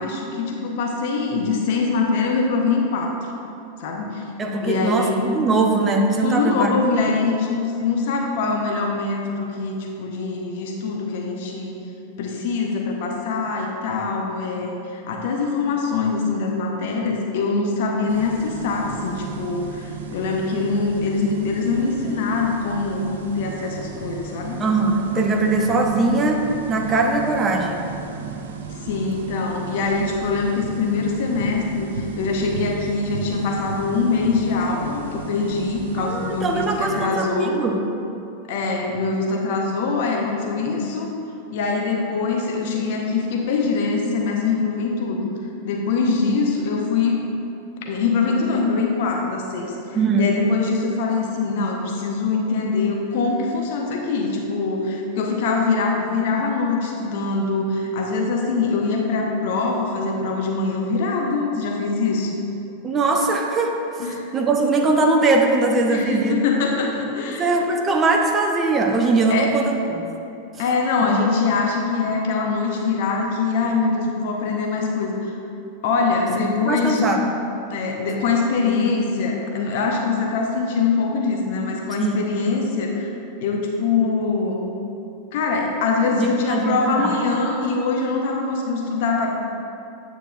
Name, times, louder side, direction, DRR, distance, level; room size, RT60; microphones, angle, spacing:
voice 1, 0.0-3.2 3.8-4.2 4.6-5.2 6.2-11.7 12.2-24.6 28.8-37.6 38.5-41.1 41.5-45.2 45.6-47.2 47.9-62.3 64.0-64.3 65.9-67.5 69.3-69.5 70.6-75.4 75.8-77.0 77.7-83.1 83.4-84.6 85.3-89.3, left 4 dB, 50° left, 0 dB, 0.7 m, -23 dB
voice 2, 4.4-6.7 24.6-27.8 36.0-37.8 49.9-50.4 62.8-64.0 64.3-66.4 67.2-70.0 71.1-71.3 76.6-77.2 81.9-82.2 86.2-87.1, right 3 dB, 20° right, 2 dB, 0.6 m, -21 dB
sound 1, 18.1-37.1, right 5 dB, 60° right, 0.5 m, -35 dB
8.9 x 6.9 x 2.4 m, 2.8 s
figure-of-eight pair, 90°, 0 cm